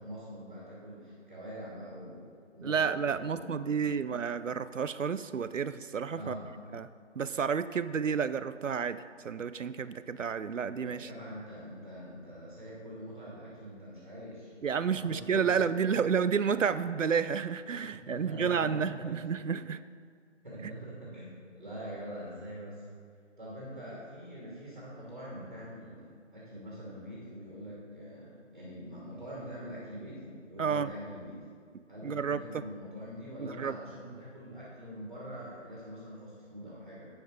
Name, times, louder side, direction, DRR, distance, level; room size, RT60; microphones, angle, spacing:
voice 1, 0.0-2.2 2.5-4.0 6.1-6.5 10.8-16.0 18.0-19.2 20.4-22.8 23.4-31.4 31.9-37.1, equal, 35° right, -7 dB, 2.5 m, -44 dB
voice 2, 2.6-6.4 6.7-6.9 7.2-11.1 14.6-19.8 20.6-20.7 30.6-30.9 32.0-32.6 33.4-33.7, right 6 dB, 80° right, 14 dB, 0.5 m, -31 dB
9.4 x 5.9 x 5.0 m, 2.1 s
figure-of-eight pair, 175°, 37 cm